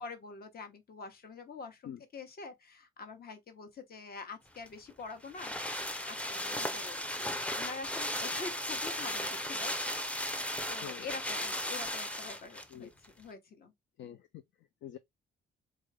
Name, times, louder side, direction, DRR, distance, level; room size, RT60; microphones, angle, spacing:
voice 1, 0.0-5.5 6.0-10.1 10.7-12.9 13.2-13.7, left 4 dB, 50° left, 1.0 m, -46 dB
sound 1, 4.6-12.7 13.0-13.1, left 1 dB, 5° left, 0.6 m, -36 dB
voice 2, 14.0-15.0, left 10 dB, 70° left, 0.4 m, -46 dB
3.7 x 2.4 x 3.2 m
cardioid pair, 90°, 20 cm